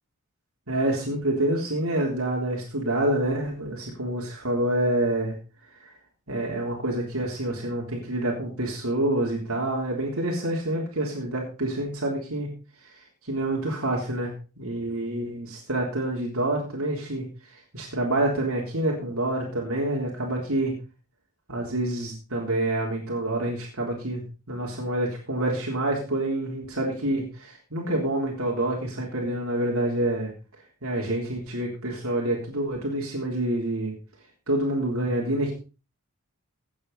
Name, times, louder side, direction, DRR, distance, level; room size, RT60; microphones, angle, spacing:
voice 1, 0.7-5.4 5.8-5.9 6.3-12.5 12.8-12.9 13.2-20.7 21.5-30.3 30.8-33.9 34.5-35.5, right 1 dB, 80° right, -2 dB, 3.6 m, -27 dB
17.0 x 8.7 x 4.1 m, 0.33 s
head